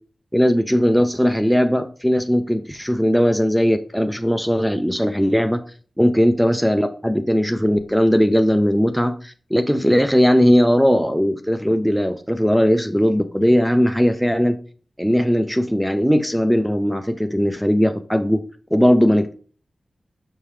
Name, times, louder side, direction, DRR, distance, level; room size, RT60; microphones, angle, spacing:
voice 1, 0.3-5.6 6.0-14.6 15.0-18.4 18.7-19.3, equal, ahead, 7 dB, 0.5 m, -18 dB
5.7 x 5.4 x 3.2 m, 0.42 s
wide cardioid pair, 65°, 0 cm